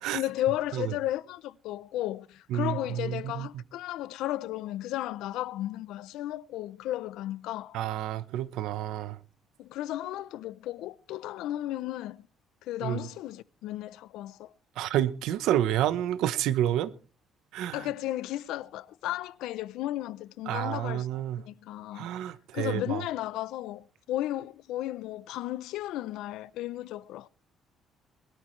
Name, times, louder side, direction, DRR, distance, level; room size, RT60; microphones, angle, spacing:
voice 1, 0.1-7.8 9.6-12.3 12.6-14.5 17.7-21.1 21.4-22.1 22.5-27.3, left 14 dB, 85° left, 0.6 m, -34 dB
voice 2, 2.5-3.5 7.7-9.2 12.8-13.0 14.8-16.9 17.5-17.9 20.5-21.4 21.9-23.0, right 12 dB, 85° right, 1.0 m, -29 dB
21.5 x 13.0 x 3.3 m
cardioid pair, 140°, 0 cm